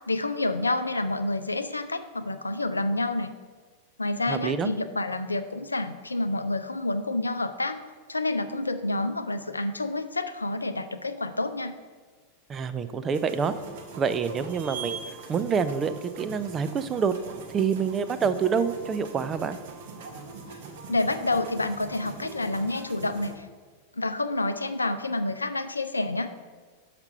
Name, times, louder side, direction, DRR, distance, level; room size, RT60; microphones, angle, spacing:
voice 1, 0.1-3.3 4.0-7.8 8.1-11.7 20.9-23.5 23.9-26.3, left 2 dB, 85° left, 9 dB, 0.5 m, -28 dB
voice 2, 4.3-4.7 12.5-13.5 14.0-17.1 17.5-19.6, right 6 dB, 25° right, 10 dB, 0.5 m, -27 dB
sound 1, 13.1-23.3, right 4 dB, 55° right, 1.1 m, -42 dB
5.9 x 5.8 x 6.6 m, 1.4 s
figure-of-eight pair, 90°, 0 cm